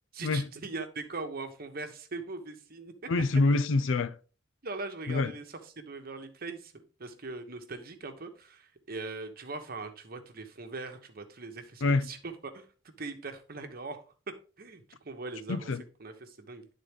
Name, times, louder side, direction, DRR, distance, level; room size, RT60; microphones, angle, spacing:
voice 1, 0.1-3.1 4.6-14.0 14.6-15.7 16.0-16.7, right 3 dB, 50° right, 1.0 m, -41 dB
voice 2, 3.1-4.2 5.1-5.3 11.8-12.1 15.5-15.8, left 3 dB, 90° left, 0.5 m, -26 dB
11.0 x 3.8 x 3.6 m
head